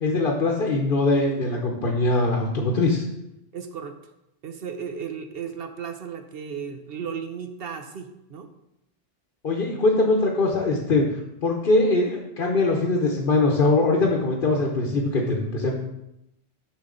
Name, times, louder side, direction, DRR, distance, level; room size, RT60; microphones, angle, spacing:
voice 1, 0.0-3.0 9.4-15.8, left 2 dB, 55° left, 0 dB, 1.1 m, -22 dB
voice 2, 3.5-4.0 4.4-8.5, right 6 dB, 65° right, 7 dB, 0.8 m, -35 dB
7.3 x 6.2 x 3.8 m, 0.86 s
omnidirectional pair, 1.1 m